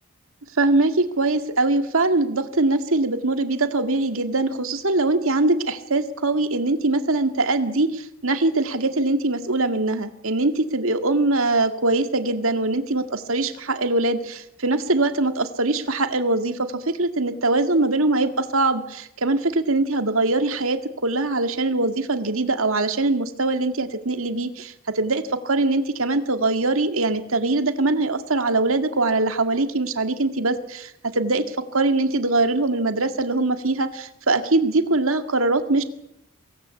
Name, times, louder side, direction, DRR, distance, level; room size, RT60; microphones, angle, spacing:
voice 1, 0.6-35.8, right 2 dB, 70° right, 8 dB, 2.0 m, -22 dB
24.0 x 17.5 x 8.4 m, 0.80 s
head